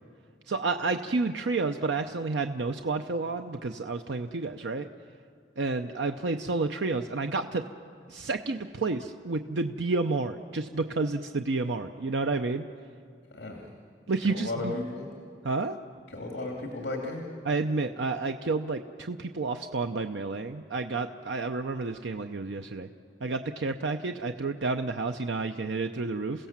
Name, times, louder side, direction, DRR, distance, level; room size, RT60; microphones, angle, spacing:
voice 1, 0.5-4.9 5.6-7.6 8.1-12.6 14.1-14.7 15.4-15.8 17.4-22.9 23.2-26.4, right 3 dB, 90° right, 6 dB, 0.7 m, -30 dB
voice 2, 13.3-13.7 14.2-15.1 16.1-17.2, left 2 dB, 70° left, 1 dB, 2.4 m, -35 dB
29.0 x 16.0 x 7.4 m, 2.4 s
head